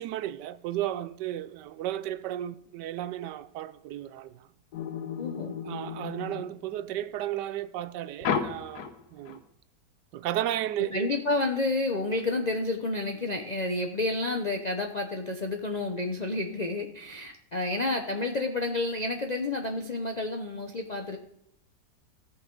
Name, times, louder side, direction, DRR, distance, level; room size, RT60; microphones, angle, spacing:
voice 1, 0.0-4.5 5.6-9.4 10.1-11.1, right 12 dB, 80° right, 1.2 m, -34 dB
sound 1, 4.7-7.0 8.2-9.4, left 7 dB, 70° left, 1.4 m, -33 dB
voice 2, 5.2-5.5 10.9-21.2, left 2 dB, 45° left, 0.5 m, -30 dB
17.0 x 5.8 x 3.8 m
omnidirectional pair, 1.8 m